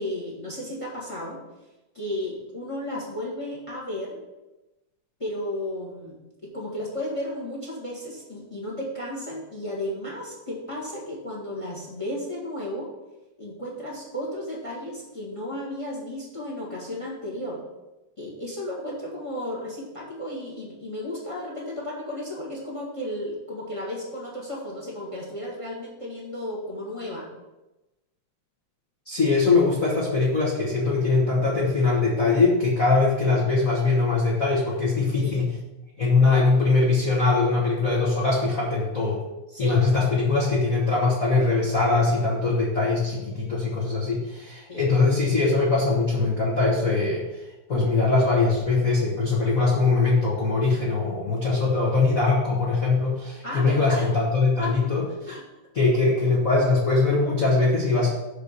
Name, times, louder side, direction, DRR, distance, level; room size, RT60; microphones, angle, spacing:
voice 1, 0.0-1.4 1.9-4.2 5.2-6.1 6.4-12.9 13.4-17.6 18.2-27.3 35.2-35.4 39.5-39.8 40.3-40.5 44.7-44.8 51.5-51.7 53.4-54.1 54.6-54.9 55.3-55.4, left 1 dB, 20° left, -4 dB, 1.0 m, -34 dB
voice 2, 29.1-35.5 36.0-39.2 39.6-47.4 47.7-55.3 55.7-58.1, left 3 dB, 60° left, -4 dB, 0.8 m, -22 dB
6.8 x 4.1 x 6.5 m, 1.0 s
omnidirectional pair, 3.5 m